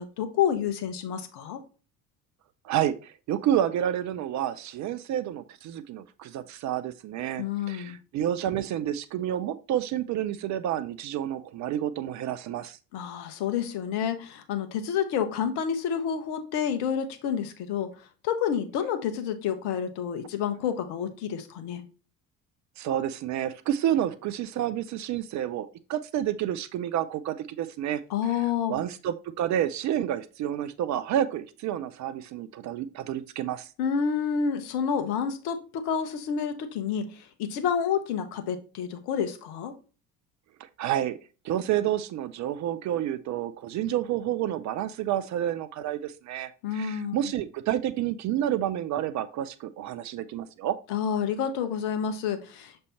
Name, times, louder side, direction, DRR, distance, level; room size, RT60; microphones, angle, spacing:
voice 1, 0.0-1.6 7.4-8.0 12.9-17.9 18.2-21.8 28.1-28.8 33.8-37.0 37.4-39.7 46.6-47.1 50.9-52.9, left 7 dB, 55° left, 8 dB, 1.1 m, -29 dB
voice 2, 2.6-12.8 22.8-28.4 28.7-33.7 40.6-41.2 41.4-50.8, right 11 dB, 40° right, 12 dB, 0.5 m, -29 dB
6.7 x 3.3 x 4.2 m, 0.35 s
figure-of-eight pair, 55°, 47 cm